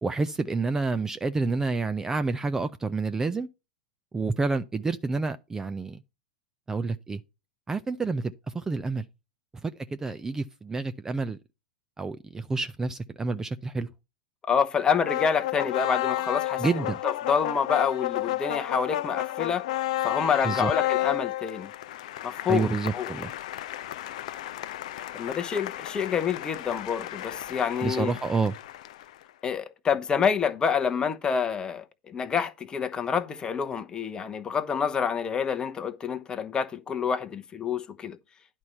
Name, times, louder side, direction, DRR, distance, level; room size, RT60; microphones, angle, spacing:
voice 1, 0.0-3.5 4.1-6.0 6.7-7.2 7.7-9.0 9.6-11.4 12.0-13.9 16.6-17.0 20.4-20.7 22.5-23.3 27.8-28.5, right 4 dB, 10° right, 0.5 m, -29 dB
voice 2, 14.5-19.7 20.0-21.7 22.2-23.1 25.1-28.1 29.4-38.2, left 6 dB, 20° left, 0.9 m, -27 dB
sound 1, 15.0-29.2, left 15 dB, 60° left, 0.5 m, -32 dB
11.0 x 4.5 x 5.4 m
figure-of-eight pair, 95°, 4 cm